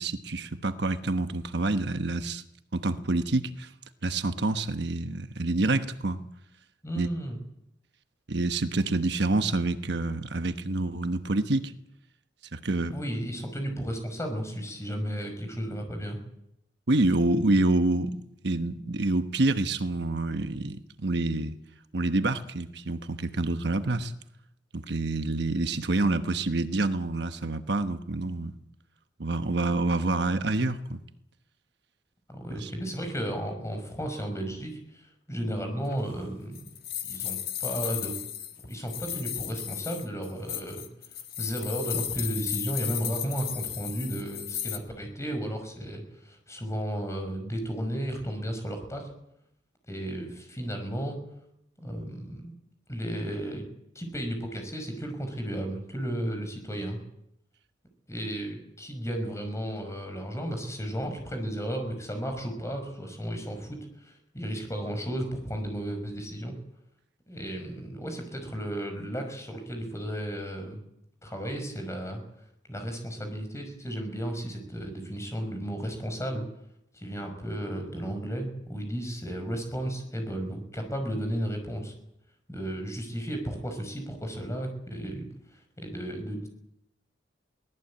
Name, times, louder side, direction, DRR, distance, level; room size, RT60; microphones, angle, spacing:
voice 1, 0.0-2.4 2.7-3.7 4.0-6.2 7.0-7.1 8.3-11.7 12.5-12.9 16.9-21.6 21.9-24.1 24.7-28.5 29.2-31.0 32.5-32.7, right 2 dB, 65° right, 9 dB, 1.1 m, -27 dB
voice 2, 6.8-7.4 12.9-16.2 32.3-35.0 35.3-36.6 37.0-38.1 38.6-40.8 41.4-49.1 49.9-51.2 51.8-52.5 52.9-53.6 53.9-57.0 58.1-63.8 64.0-66.5 67.3-70.8 71.2-72.2 72.7-76.4 76.9-81.9 82.5-85.3 85.8-86.5, equal, 15° left, 5 dB, 5.6 m, -34 dB
sound 1, 35.9-44.8, left 10 dB, 55° left, 1.9 m, -35 dB
23.5 x 18.0 x 8.6 m, 0.79 s
head